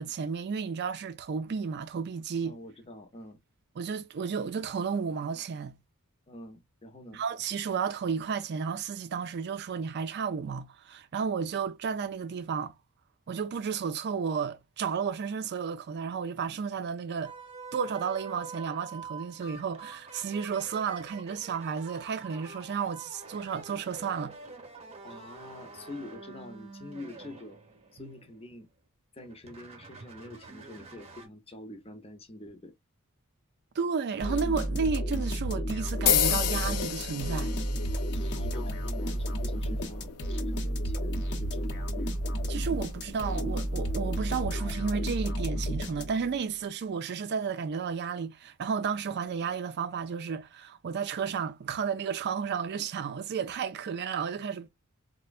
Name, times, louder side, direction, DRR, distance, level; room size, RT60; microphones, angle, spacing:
voice 1, 0.0-2.6 3.8-5.8 7.1-12.7 13.3-17.3 17.7-24.4 28.0-28.1 33.8-37.5 42.5-54.7, right 6 dB, 50° right, 0.4 m, -32 dB
voice 2, 2.4-3.4 6.3-7.2 25.0-27.6 27.9-28.7 29.1-32.7 38.1-42.1, left 1 dB, 25° left, 0.7 m, -46 dB
sound 1, 17.2-28.6 29.2-31.3, right 4 dB, 25° right, 0.9 m, -46 dB
sound 2, 34.2-46.4, equal, 55° left, 0.8 m, -32 dB
sound 3, 36.1-44.2, left 9 dB, 85° left, 0.5 m, -34 dB
4.2 x 2.1 x 2.3 m
head